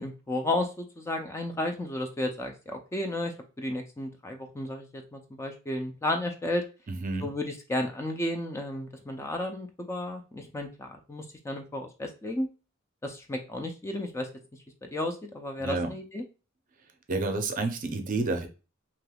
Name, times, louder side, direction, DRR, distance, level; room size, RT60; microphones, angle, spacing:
voice 1, 0.0-6.6 7.2-12.5 13.0-14.3 14.9-16.2, left 1 dB, 15° left, 4 dB, 0.3 m, -33 dB
voice 2, 6.9-7.3 15.6-15.9 17.1-18.5, right 3 dB, 40° right, 6 dB, 0.5 m, -29 dB
3.3 x 2.9 x 2.2 m, 0.32 s
head